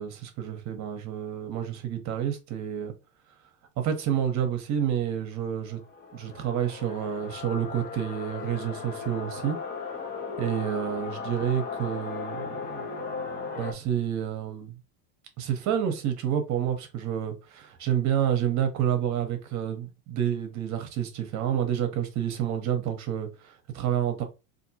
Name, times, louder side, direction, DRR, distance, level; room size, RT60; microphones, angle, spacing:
voice 1, 0.0-2.9 3.8-5.8 6.1-9.6 10.4-14.8 15.4-24.2, right 9 dB, 40° right, 0.9 m, -29 dB
sound 1, 5.6-13.7, left 5 dB, 20° left, 0.6 m, -37 dB
3.5 x 2.6 x 2.7 m
supercardioid pair, 145°, 45 cm